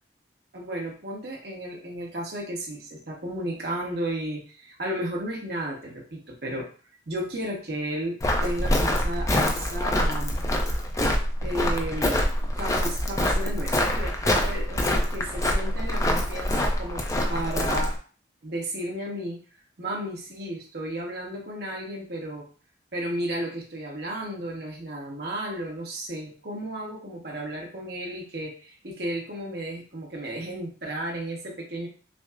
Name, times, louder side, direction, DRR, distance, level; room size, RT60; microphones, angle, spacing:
voice 1, 0.5-6.7 7.1-8.2 8.4-10.4 11.4-17.0 17.3-17.9 18.4-19.4 19.8-22.5 22.9-31.9, right 1 dB, 60° right, -1 dB, 1.1 m, -33 dB
Walk footsteps, 8.2-18.0, left 1 dB, 15° left, 0.4 m, -25 dB
6.0 x 2.0 x 2.4 m, 0.38 s
head